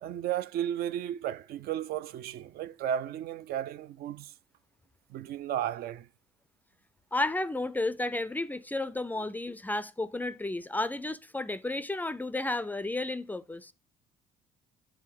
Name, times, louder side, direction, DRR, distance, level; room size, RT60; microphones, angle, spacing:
voice 1, 0.0-4.3 5.1-6.1, right 10 dB, 65° right, 0.4 m, -34 dB
voice 2, 7.1-13.7, left 2 dB, 10° left, 0.3 m, -32 dB
7.7 x 3.5 x 4.7 m
cardioid pair, 110°, 17 cm